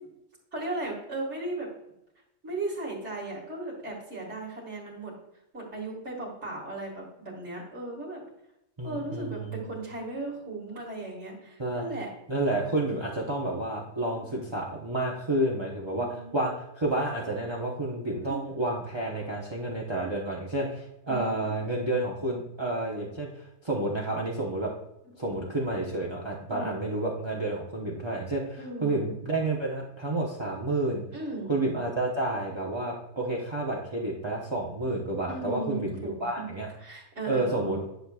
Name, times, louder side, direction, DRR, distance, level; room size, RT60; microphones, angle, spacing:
voice 1, 0.5-1.7 2.4-5.1 5.5-8.2 8.8-12.1 14.1-14.3 15.9-16.4 18.2-18.5 21.1-21.6 25.2-25.4 26.5-26.7 28.6-29.0 31.1-31.6 35.3-36.5 36.8-37.9, right 2 dB, 80° right, -3 dB, 2.3 m, -36 dB
voice 2, 8.8-9.6 11.6-11.8 12.3-23.3 23.6-24.7 25.2-31.0 31.5-36.7 37.3-37.8, right 2 dB, 25° right, -3 dB, 1.0 m, -30 dB
10.5 x 6.5 x 2.4 m, 0.83 s
omnidirectional pair, 1.2 m